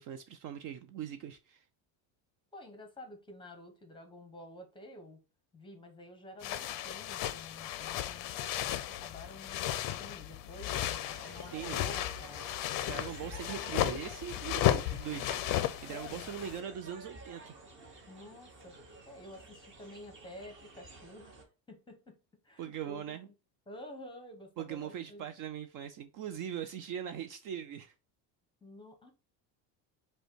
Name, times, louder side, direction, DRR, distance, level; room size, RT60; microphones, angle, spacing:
voice 1, 0.0-1.6 11.5-11.9 12.9-15.4 15.8-17.6 22.6-23.3 24.6-27.9, right 9 dB, 50° right, 9 dB, 0.4 m, -41 dB
voice 2, 2.5-5.2 5.5-12.5 15.9-16.3 18.1-18.8 19.1-22.1 22.4-23.2 23.7-25.3 28.6-29.1, left 1 dB, 10° left, 5 dB, 0.8 m, -50 dB
sound 1, 6.4-16.6, left 12 dB, 50° left, 0.5 m, -34 dB
sound 2, 10.7-21.4, right 2 dB, 25° right, 1.0 m, -51 dB
5.3 x 2.3 x 4.4 m, 0.32 s
cardioid pair, 150°, 44 cm